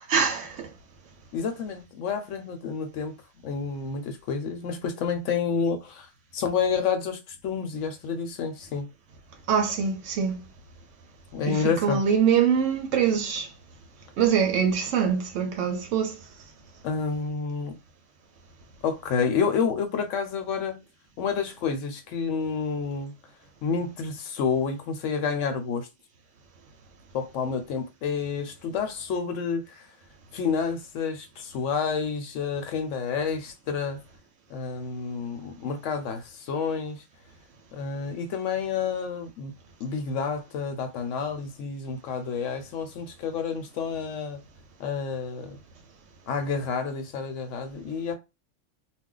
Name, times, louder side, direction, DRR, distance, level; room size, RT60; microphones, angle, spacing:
voice 1, 0.1-0.7 9.5-10.4 11.5-13.5 14.2-16.2, right 7 dB, 85° right, 1.0 m, -24 dB
voice 2, 1.3-3.1 3.4-6.1 6.3-8.9 11.3-12.0 16.8-17.8 18.8-20.8 21.2-23.1 23.6-25.9 27.1-29.9 30.3-34.0 34.5-37.0 37.7-39.5 39.8-44.4 44.8-45.6 46.3-48.1, left 6 dB, 80° left, 1.0 m, -29 dB
2.4 x 2.1 x 3.7 m
omnidirectional pair, 1.3 m